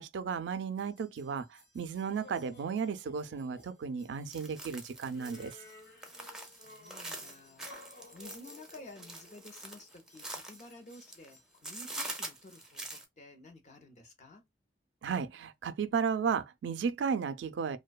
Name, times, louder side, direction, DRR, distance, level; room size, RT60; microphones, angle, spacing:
voice 1, 0.0-5.6 15.0-17.8, right 6 dB, 85° right, 0.3 m, -34 dB
sound 1, 0.8-12.7, left 2 dB, 70° left, 1.1 m, -57 dB
sound 2, 4.3-11.3 11.6-13.0, right 2 dB, 5° right, 0.5 m, -44 dB
voice 2, 6.5-14.4, left 2 dB, 40° left, 0.6 m, -53 dB
2.6 x 2.1 x 2.2 m
head